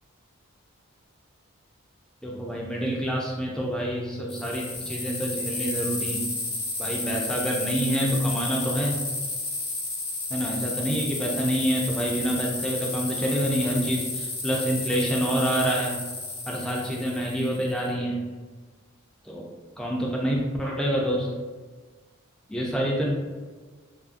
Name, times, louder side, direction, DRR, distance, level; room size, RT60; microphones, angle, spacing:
voice 1, 2.2-6.3 6.8-8.9 10.3-16.0 16.5-18.2 19.2-19.5 19.8-21.3 22.5-23.1, equal, 5° left, -3 dB, 0.3 m, -27 dB
sound 1, 4.3-17.9, left 2 dB, 85° left, 0.9 m, -32 dB
2.6 x 2.5 x 2.4 m, 1.4 s
head